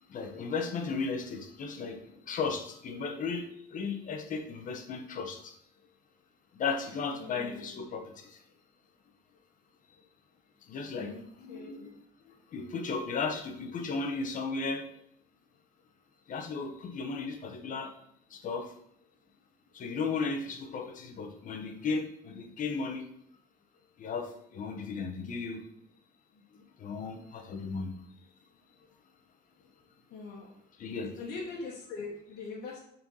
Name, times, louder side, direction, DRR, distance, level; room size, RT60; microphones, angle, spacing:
voice 1, 0.1-5.5 6.5-8.4 10.7-11.9 12.5-14.8 16.3-17.9 18.3-18.7 19.7-23.0 24.0-25.6 26.8-27.9 30.8-31.1, left 4 dB, 50° left, 5 dB, 1.0 m, -35 dB
voice 2, 7.1-7.9 11.0-11.2 11.5-11.9 30.1-30.5 31.2-32.8, left 4 dB, 70° left, -4 dB, 1.3 m, -42 dB
4.4 x 4.0 x 5.4 m, 0.71 s
cardioid pair, 110°, 17 cm